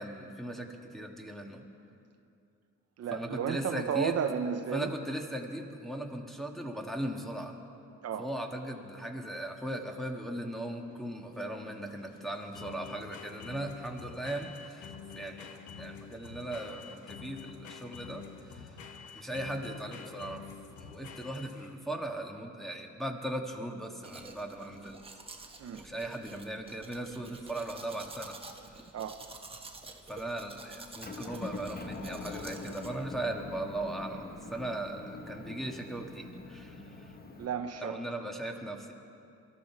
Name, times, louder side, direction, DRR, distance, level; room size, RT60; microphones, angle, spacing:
voice 1, 0.0-1.6 3.1-4.2 4.7-7.6 8.2-18.7 19.1-20.4 20.8-25.0 25.7-28.4 28.7-28.8 30.1-37.1 37.8-38.9, right 1 dB, ahead, 0 dB, 1.7 m, -38 dB
voice 2, 3.0-4.9 8.0-8.3 25.6-25.8 28.9-29.2 37.4-38.0, right 8 dB, 55° right, 8 dB, 0.8 m, -33 dB
sound 1, 10.3-21.9, left 6 dB, 75° left, 1.3 m, -48 dB
Domestic sounds home sounds, 24.0-32.9, right 3 dB, 20° right, 1.4 m, -49 dB
Motor vehicle (road) / Engine, 31.0-37.5, left 3 dB, 30° left, 1.5 m, -43 dB
23.0 x 13.5 x 4.7 m, 2.6 s
cardioid pair, 90°, 30 cm